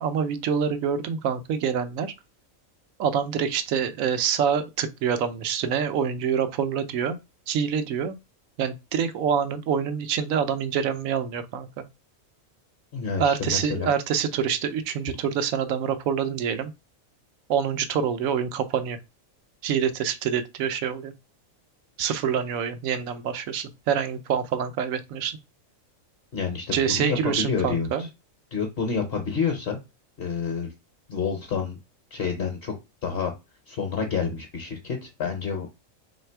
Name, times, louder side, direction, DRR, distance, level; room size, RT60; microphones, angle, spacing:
voice 1, 0.0-2.1 3.0-7.2 7.5-8.2 8.6-11.8 13.2-16.7 17.5-19.0 19.6-21.1 22.0-25.4 26.7-28.1, right 7 dB, 80° right, 1.0 m, -26 dB
voice 2, 12.9-13.9 26.3-28.1 28.5-29.8 30.2-30.7 31.1-31.8 32.1-32.7 33.0-33.3 33.7-35.9, left 6 dB, 55° left, 0.9 m, -28 dB
3.2 x 2.8 x 4.4 m
omnidirectional pair, 1.4 m